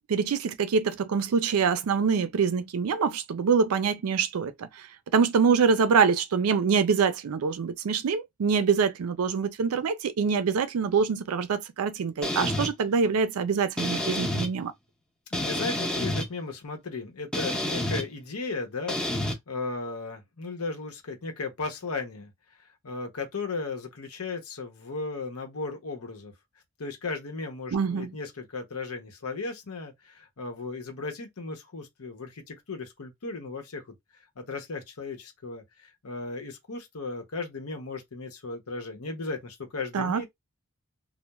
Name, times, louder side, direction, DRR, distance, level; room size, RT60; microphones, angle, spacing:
voice 1, 0.1-4.7 5.1-14.7 27.7-28.1 39.9-40.2, right 5 dB, 80° right, 0.4 m, -25 dB
sound 1, 12.2-12.7 13.8-14.5 15.3-16.3 17.3-18.0 18.9-19.3, left 1 dB, 5° left, 0.5 m, -29 dB
voice 2, 15.3-22.3 22.6-26.3 26.8-33.9 34.4-40.3, left 3 dB, 85° left, 0.9 m, -36 dB
2.3 x 2.1 x 2.9 m
head